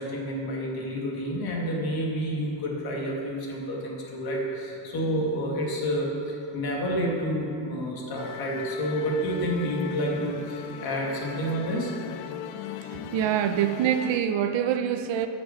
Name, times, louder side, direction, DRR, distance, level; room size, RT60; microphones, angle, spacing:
voice 1, 0.0-11.9, equal, 50° left, -2 dB, 2.3 m, -29 dB
Musical instrument, 8.2-14.2, left 9 dB, 75° left, 0.7 m, -39 dB
voice 2, 12.9-15.3, right 9 dB, 65° right, 9 dB, 0.8 m, -25 dB
11.5 x 6.4 x 7.2 m, 2.8 s
cardioid pair, 155°, 48 cm